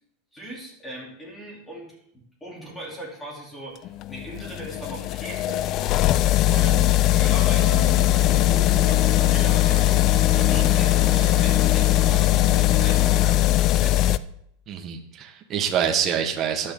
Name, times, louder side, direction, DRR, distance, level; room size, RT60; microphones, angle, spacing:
voice 1, 0.3-5.6 6.5-10.0 10.4-14.1, right 1 dB, 10° left, -3 dB, 3.1 m, -39 dB
sound 1, 3.8-14.2, left 15 dB, 30° left, 0.3 m, -20 dB
voice 2, 6.5-6.8 10.3-10.6 14.7-16.7, right 8 dB, 25° right, 2 dB, 1.3 m, -27 dB
sound 2, 7.2-13.3, left 5 dB, 50° left, 3.0 m, -33 dB
13.5 x 10.5 x 3.7 m, 0.74 s
supercardioid pair, 175°, 0 cm